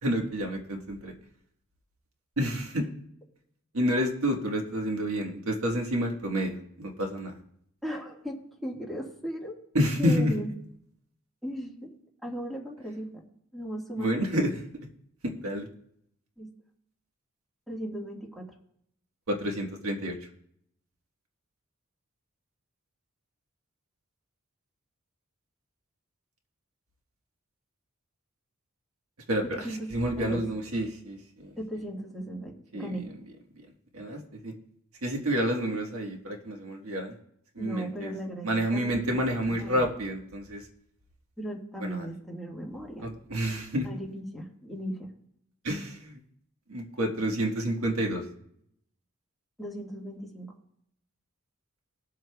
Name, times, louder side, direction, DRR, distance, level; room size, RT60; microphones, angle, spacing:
voice 1, 0.0-1.1 2.4-2.9 3.7-7.3 9.7-10.3 14.0-14.6 15.2-15.7 19.3-20.2 29.3-31.5 32.7-33.0 33.9-34.5 35.0-37.1 37.5-38.1 38.4-40.6 41.8-42.0 43.0-43.8 45.6-46.2 46.7-48.2, equal, 75° right, 2 dB, 1.5 m, -29 dB
voice 2, 7.8-9.5 10.0-10.5 11.4-11.9 12.2-13.2 13.5-14.5 16.4-16.5 17.7-18.5 29.6-29.9 30.2-30.4 31.6-33.1 37.6-39.2 39.6-39.8 41.4-43.1 43.8-45.1 49.6-50.5, right 1 dB, ahead, -3 dB, 1.7 m, -37 dB
20.5 x 7.7 x 2.3 m, 0.73 s
head